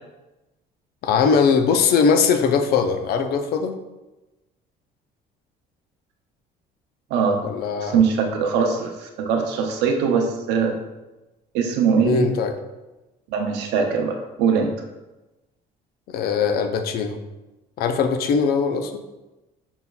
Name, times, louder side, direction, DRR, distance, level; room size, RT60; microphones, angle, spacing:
voice 1, 1.0-3.8 7.4-8.0 12.0-12.6 16.1-17.2 17.8-18.9, left 5 dB, 65° left, 7 dB, 0.4 m, -20 dB
voice 2, 7.1-7.4 7.8-10.7 11.5-12.3 13.3-14.7, right 6 dB, 90° right, 3 dB, 0.5 m, -21 dB
5.4 x 2.1 x 2.3 m, 1.1 s
cardioid pair, 110°, 17 cm